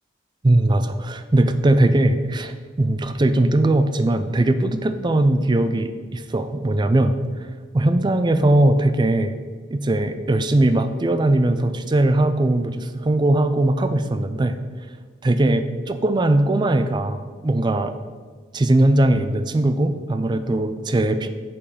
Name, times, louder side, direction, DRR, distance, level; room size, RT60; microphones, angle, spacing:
voice 1, 0.4-7.2 7.7-9.3 9.7-14.6 15.2-17.9 18.5-21.3, right 1 dB, 25° right, 10 dB, 0.4 m, -20 dB
6.8 x 5.0 x 5.6 m, 1.5 s
head